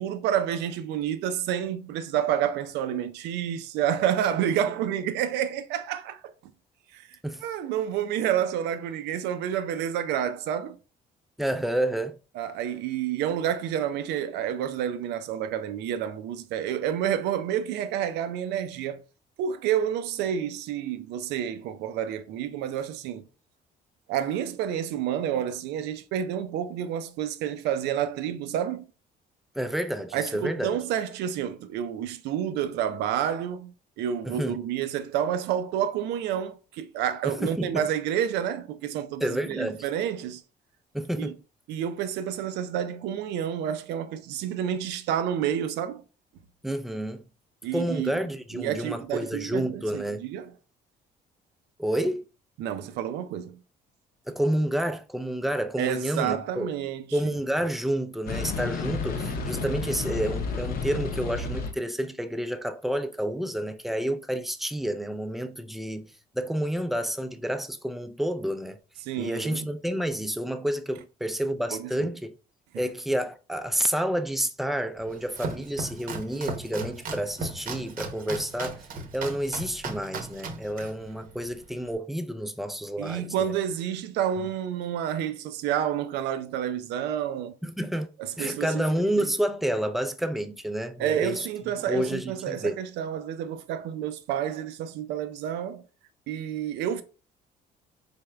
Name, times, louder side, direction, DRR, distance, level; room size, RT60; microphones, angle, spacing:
voice 1, 0.0-6.2 6.9-10.8 12.3-19.0 19.4-23.2 24.1-28.9 30.1-40.4 41.2-41.3 41.7-46.0 47.6-48.1 48.5-50.5 52.6-53.6 55.8-57.0 69.0-69.7 71.7-72.1 72.7-72.8 83.0-87.6 88.2-88.8 89.2-89.3 91.0-95.8 96.3-97.0, right 9 dB, 85° right, 0.5 m, -29 dB
voice 2, 11.4-12.1 29.6-30.7 34.2-34.6 37.2-37.8 39.2-39.8 40.9-41.3 46.6-47.2 47.7-50.3 51.8-52.2 54.3-56.7 57.1-68.8 69.2-72.3 72.7-78.9 79.1-83.5 87.6-88.1 88.4-91.5 91.9-92.8, right 1 dB, ahead, 0.4 m, -29 dB
sound 1, 58.3-61.7, left 4 dB, 60° left, 0.7 m, -31 dB
Domestic sounds home sounds, 75.0-81.9, right 3 dB, 55° right, 0.8 m, -37 dB
4.1 x 3.5 x 2.2 m
cardioid pair, 110°, 17 cm